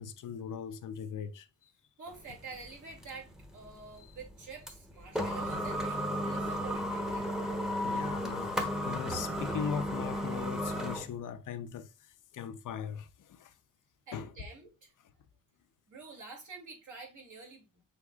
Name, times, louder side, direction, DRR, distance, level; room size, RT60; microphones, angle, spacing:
voice 1, 0.0-1.5 7.8-11.9 12.3-13.5 14.1-14.3, left 7 dB, 70° left, 0.6 m, -39 dB
voice 2, 2.0-7.3 14.1-14.9 15.9-17.8, right 4 dB, 65° right, 2.5 m, -48 dB
sound 1, 2.1-11.1, equal, ahead, 0.9 m, -34 dB
6.3 x 3.5 x 2.3 m
cardioid pair, 110°, 32 cm